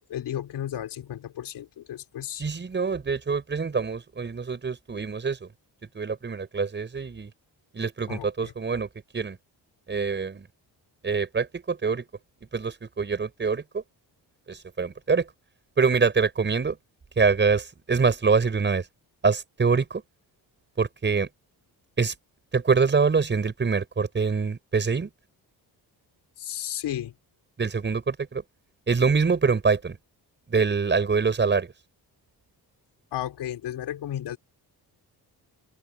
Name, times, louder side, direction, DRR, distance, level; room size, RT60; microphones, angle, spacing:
voice 1, 0.1-2.4 8.1-8.5 26.4-27.1 33.1-34.4, left 11 dB, 85° left, 4.4 m, -33 dB
voice 2, 2.4-5.5 5.9-7.3 7.7-9.4 9.9-10.5 11.0-12.1 12.5-13.8 14.5-15.3 15.8-16.8 17.2-18.9 19.2-20.0 20.8-21.3 22.0-22.1 22.5-25.1 27.6-28.4 28.9-30.0 30.5-31.7, right 5 dB, 25° right, 6.9 m, -25 dB
wide cardioid pair, 165°, 40 cm